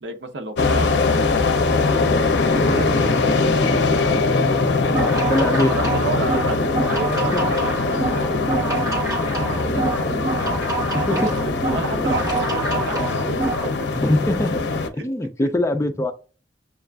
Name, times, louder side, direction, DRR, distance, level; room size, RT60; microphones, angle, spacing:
voice 1, 0.0-2.1 2.4-4.5 5.3-10.2 10.9-13.2 15.0-15.1 15.4-15.5, right 3 dB, 75° right, 0.7 m, -32 dB
sound 1, 0.6-14.9, left 3 dB, 75° left, 0.5 m, -21 dB
sound 2, 4.8-13.7, right 3 dB, 20° right, 1.2 m, -26 dB
voice 2, 5.3-5.7 7.3-7.6 10.9-11.3 13.9-14.5 15.0-16.1, left 1 dB, 15° left, 0.4 m, -22 dB
7.1 x 2.4 x 2.2 m
head